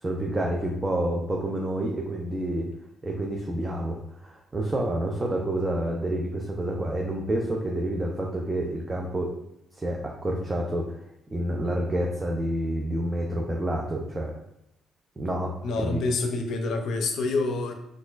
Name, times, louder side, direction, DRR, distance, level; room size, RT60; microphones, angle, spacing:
voice 1, 0.0-2.7 3.0-9.4 9.8-11.0 11.3-14.3 15.2-16.0, right 1 dB, 20° right, 0 dB, 0.5 m, -28 dB
voice 2, 15.6-17.7, left 3 dB, 75° left, 5 dB, 0.5 m, -27 dB
4.1 x 2.4 x 2.4 m, 0.82 s
cardioid pair, 90°, 0 cm